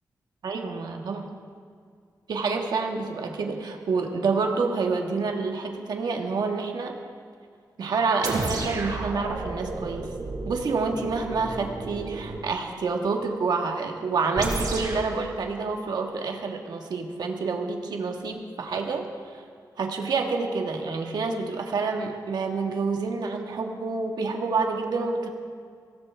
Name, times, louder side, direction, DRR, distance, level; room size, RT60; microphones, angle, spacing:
voice 1, 0.4-1.2 2.3-7.0 7.8-10.1 10.5-19.1 19.3-19.4 19.8-25.3, right 4 dB, 85° right, 2 dB, 1.6 m, -28 dB
sound 1, 8.2-12.5 14.4-15.1, right 3 dB, 70° right, 2.8 m, -32 dB
23.0 x 17.0 x 3.5 m, 2.1 s
wide cardioid pair, 110°, 7 cm